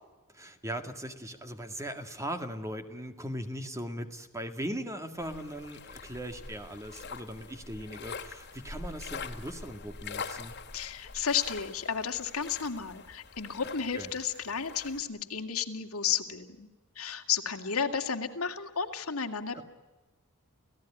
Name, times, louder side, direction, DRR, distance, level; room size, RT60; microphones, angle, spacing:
voice 1, 0.3-10.6 13.9-14.1 19.5-19.6, equal, 15° right, 7 dB, 1.9 m, -39 dB
sound 1, 5.2-15.0, left 5 dB, 50° left, 2.2 m, -44 dB
voice 2, 10.7-16.7 17.0-19.6, left 7 dB, 80° left, 5 dB, 2.4 m, -32 dB
30.0 x 17.0 x 10.0 m, 1.2 s
head